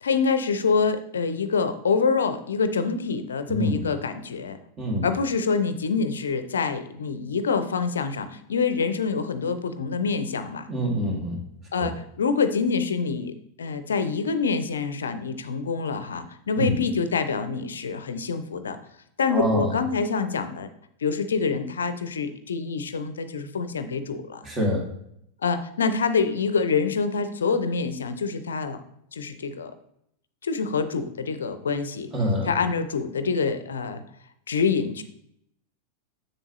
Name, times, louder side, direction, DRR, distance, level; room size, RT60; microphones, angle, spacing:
voice 1, 0.0-4.6 5.0-10.7 11.7-18.8 19.2-20.7 21.0-24.4 25.4-28.8 29.1-29.7 30.4-32.1 32.5-34.0 34.5-35.0, left 5 dB, 70° left, 11 dB, 0.6 m, -26 dB
voice 2, 3.5-3.8 4.8-5.1 10.7-11.4 11.8-11.9 16.6-16.8 19.3-19.8 24.4-24.9 32.1-32.5, equal, 25° right, 0 dB, 2.2 m, -25 dB
7.1 x 6.8 x 3.0 m, 0.73 s
figure-of-eight pair, 90°, 0 cm